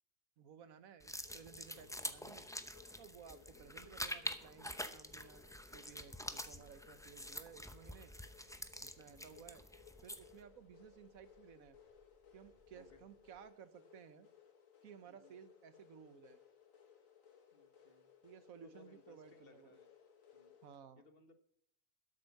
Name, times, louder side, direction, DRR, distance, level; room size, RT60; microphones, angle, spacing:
voice 1, 0.4-2.5 3.0-5.4 5.7-8.1 8.8-9.6 10.0-11.8 12.3-14.3 14.8-16.4 18.2-19.8 20.6-21.0, right 8 dB, 80° right, 13 dB, 1.4 m, -57 dB
sound 1, 1.0-10.4, left 1 dB, 5° left, 0.4 m, -47 dB
sound 2, 1.2-20.8, left 7 dB, 70° left, 1.9 m, -64 dB
sound 3, 2.9-13.4, right 2 dB, 40° right, 4.8 m, -72 dB
voice 2, 3.3-3.7 7.2-7.3 9.0-9.4 12.7-13.0 15.1-15.3 17.5-18.1 18.6-19.9 20.3-20.5 21.0-21.3, left 3 dB, 45° left, 7 dB, 1.5 m, -65 dB
13.0 x 8.2 x 5.9 m, 0.69 s
omnidirectional pair, 1.4 m